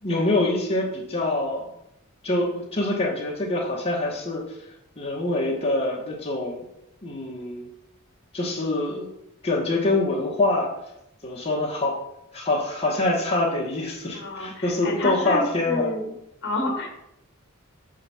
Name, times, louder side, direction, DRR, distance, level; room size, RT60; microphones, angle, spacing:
voice 1, 0.0-1.7 2.2-4.6 5.0-6.6 7.0-7.7 8.3-9.1 9.4-10.7 11.2-12.0 12.3-15.9, left 2 dB, 30° left, -4 dB, 1.0 m, -25 dB
voice 2, 14.1-16.1 16.4-16.9, left 1 dB, 55° left, 2 dB, 1.5 m, -29 dB
5.7 x 3.8 x 5.6 m, 0.84 s
head